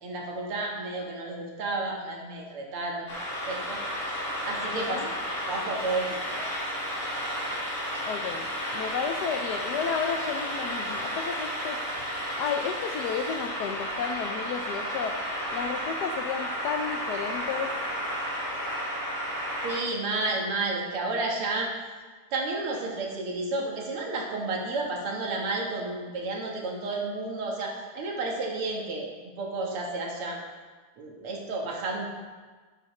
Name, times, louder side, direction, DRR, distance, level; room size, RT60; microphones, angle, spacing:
voice 1, 0.0-3.8 4.4-5.1 5.5-6.4 19.6-21.7 22.3-29.1 29.4-30.4 31.0-32.1, right 3 dB, 80° right, -1 dB, 2.4 m, -31 dB
sound 1, 3.1-19.8, equal, 35° left, 2.1 m, -32 dB
voice 2, 4.7-5.1 8.0-11.8 12.4-15.2 15.5-17.7, left 6 dB, 85° left, 4 dB, 0.9 m, -32 dB
12.0 x 8.5 x 3.2 m, 1.4 s
omnidirectional pair, 2.4 m